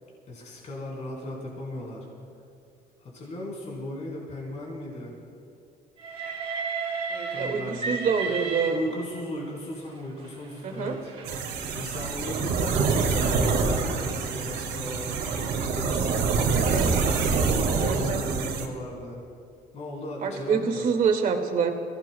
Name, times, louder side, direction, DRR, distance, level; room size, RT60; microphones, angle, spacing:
voice 1, 0.3-2.1 3.0-5.1 7.3-8.0 8.7-11.1 11.7-15.2 15.6-16.8 17.4-19.2 19.7-20.9, left 1 dB, 45° left, -4 dB, 4.1 m, -36 dB
Train, 6.0-9.4 10.2-15.5, right 4 dB, 35° right, 1.6 m, -36 dB
voice 2, 7.1-8.8 10.6-11.0 16.6-16.8 17.8-18.2 20.2-21.7, right 6 dB, 55° right, 2 dB, 2.1 m, -26 dB
sound 1, 11.2-18.7, right 4 dB, 80° right, 1.9 m, -26 dB
27.5 x 16.5 x 2.3 m, 2.5 s
cardioid pair, 110°, 17 cm